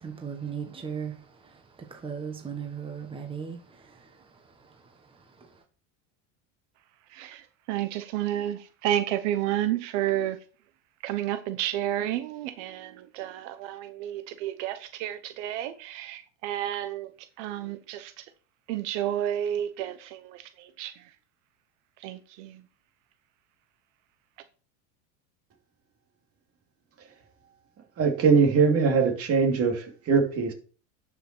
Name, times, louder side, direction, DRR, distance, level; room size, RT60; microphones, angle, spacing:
voice 1, 0.0-1.2 1.8-3.6 3.9-4.1, right 7 dB, 15° right, 1.5 m, -36 dB
voice 2, 7.1-10.4 11.0-18.3 18.7-21.1 22.0-22.6, right 12 dB, 70° right, 0.9 m, -31 dB
voice 3, 28.0-30.5, right 5 dB, 40° right, 2.7 m, -22 dB
11.5 x 6.0 x 4.4 m
supercardioid pair, 135°, 38 cm